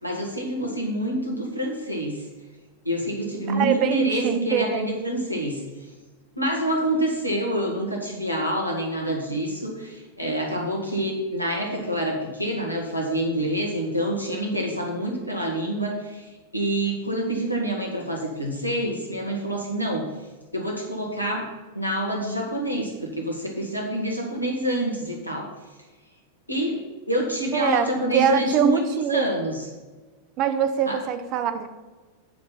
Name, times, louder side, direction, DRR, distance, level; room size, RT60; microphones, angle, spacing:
voice 1, 0.0-2.3 2.9-5.6 6.4-20.1 20.5-21.5 21.7-25.5 26.5-28.8 29.1-29.6 30.9-31.0, equal, 90° left, 0 dB, 1.9 m, -27 dB
voice 2, 3.5-4.9 27.5-29.4 30.4-31.7, right 8 dB, 40° right, 9 dB, 0.8 m, -23 dB
9.3 x 5.3 x 5.8 m, 1.3 s
figure-of-eight pair, 90°, 0 cm